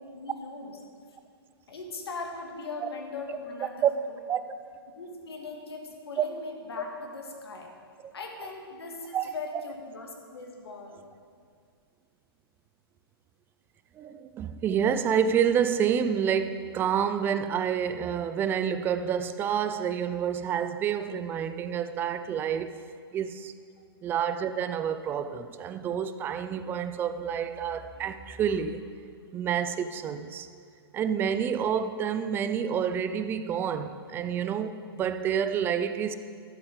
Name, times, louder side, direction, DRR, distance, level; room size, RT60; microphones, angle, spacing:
voice 1, 0.1-0.7 1.7-3.9 5.0-7.7 8.1-11.0, left 3 dB, 75° left, 1.7 m, -39 dB
voice 2, 14.0-22.7 23.1-23.5 24.0-28.9 29.3-30.5 30.9-34.7 35.0-36.1, right 8 dB, 15° right, 0.3 m, -28 dB
12.0 x 7.7 x 3.8 m
hypercardioid pair, 125°, 13 cm